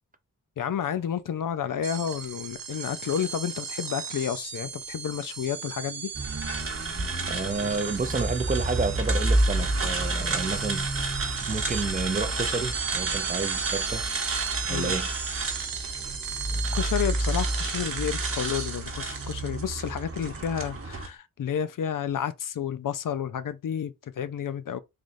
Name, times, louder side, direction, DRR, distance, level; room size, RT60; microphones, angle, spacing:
voice 1, 0.6-6.1 14.7-14.9 16.5-24.8, left 9 dB, 70° left, 0.5 m, -31 dB
sound 1, 1.8-21.0, right 6 dB, 90° right, 0.8 m, -36 dB
sound 2, 6.1-21.1, right 2 dB, 40° right, 1.1 m, -30 dB
voice 2, 7.3-10.9 11.4-14.1 14.7-15.1, right 4 dB, 25° right, 0.5 m, -30 dB
3.9 x 3.1 x 2.5 m
wide cardioid pair, 100°, 33 cm